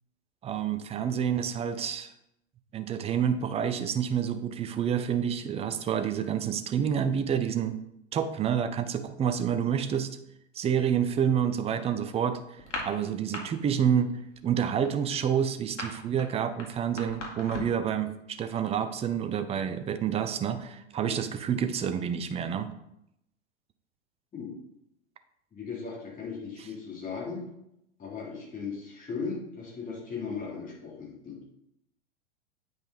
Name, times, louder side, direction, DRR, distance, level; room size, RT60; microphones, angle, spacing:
voice 1, 0.4-2.1 2.7-7.8 8.1-10.1 10.5-12.4 12.8-22.7, right 8 dB, 15° right, 10 dB, 0.6 m, -28 dB
sound 1, 12.6-13.4 13.7-14.0 14.3-17.9, left 2 dB, 80° left, 2.1 m, -38 dB
voice 2, 25.5-27.5 28.0-31.4, left 5 dB, 25° left, -3 dB, 3.0 m, -37 dB
8.8 x 5.3 x 4.1 m, 0.80 s
figure-of-eight pair, 95°, 36 cm